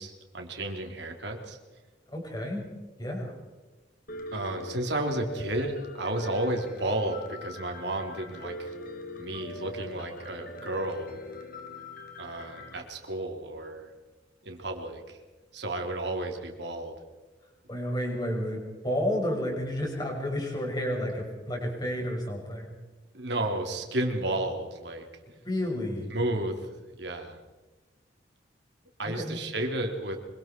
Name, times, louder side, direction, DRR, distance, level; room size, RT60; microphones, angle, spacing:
voice 1, 0.0-1.6 4.3-8.7 9.2-11.2 12.2-13.9 14.4-15.2 15.5-16.9 23.1-25.1 26.1-26.7 27.0-27.4 29.0-30.2, right 1 dB, 65° right, 3 dB, 3.2 m, -32 dB
voice 2, 2.1-2.7 3.0-3.3 17.7-22.7 25.4-26.2 29.0-29.4, left 1 dB, 20° left, 0 dB, 5.9 m, -31 dB
Piano, 4.1-12.8, left 2 dB, 50° left, 2.2 m, -42 dB
25.0 x 25.0 x 4.6 m, 1.2 s
head